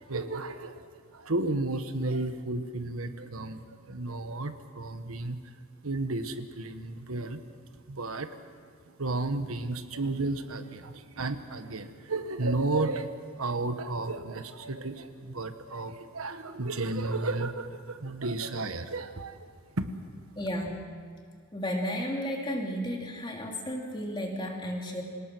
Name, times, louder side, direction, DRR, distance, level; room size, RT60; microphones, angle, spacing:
voice 1, 0.0-5.4 5.8-7.4 7.7-8.3 9.0-13.1 13.4-19.5 19.8-20.0, right 2 dB, 85° right, 9 dB, 1.3 m, -33 dB
voice 2, 20.4-20.9 21.5-25.0, equal, 20° left, 0 dB, 2.9 m, -33 dB
26.0 x 18.5 x 6.2 m, 2.1 s
head